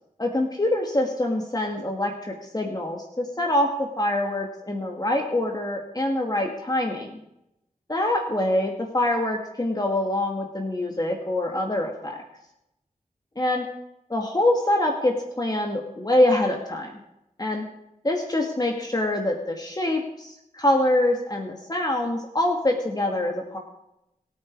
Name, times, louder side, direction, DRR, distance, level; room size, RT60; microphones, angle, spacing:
voice 1, 0.2-7.1 7.9-12.2 13.4-13.7 14.1-16.9 17.4-17.6 18.0-23.6, left 1 dB, 30° left, 1 dB, 2.3 m, -25 dB
27.0 x 9.6 x 4.8 m, 0.84 s
wide cardioid pair, 85°, 14 cm